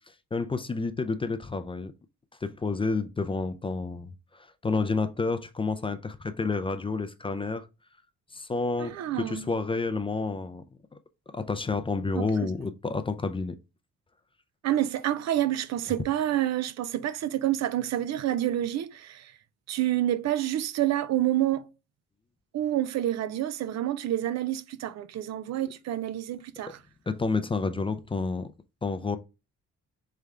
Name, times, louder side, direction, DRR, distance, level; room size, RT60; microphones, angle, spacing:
voice 1, 0.3-1.9 2.4-4.1 4.6-7.7 8.3-10.6 11.3-13.6 27.1-28.5 28.8-29.2, left 3 dB, 20° left, 0.4 m, -29 dB
voice 2, 8.8-9.5 12.1-12.5 14.6-19.3 19.7-21.7 22.5-26.8, right 12 dB, 60° right, 0.4 m, -28 dB
3.4 x 3.3 x 3.6 m
cardioid pair, 90°, 30 cm